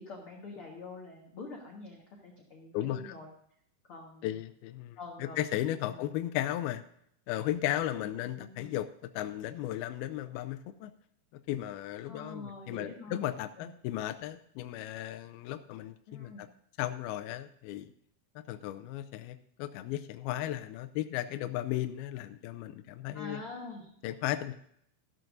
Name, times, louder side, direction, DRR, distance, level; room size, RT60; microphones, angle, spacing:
voice 1, 0.0-3.3 3.9-4.3 5.0-5.4 5.9-6.0 8.0-8.7 12.0-13.1 13.6-13.7 16.1-16.4 23.1-23.9, left 3 dB, 55° left, -1 dB, 1.5 m, -45 dB
voice 2, 2.7-3.1 4.2-6.8 7.3-10.9 11.5-16.5 16.8-17.9 18.4-23.4 24.0-24.6, left 13 dB, 80° left, 10 dB, 2.4 m, -35 dB
14.0 x 12.0 x 2.6 m, 0.69 s
omnidirectional pair, 4.6 m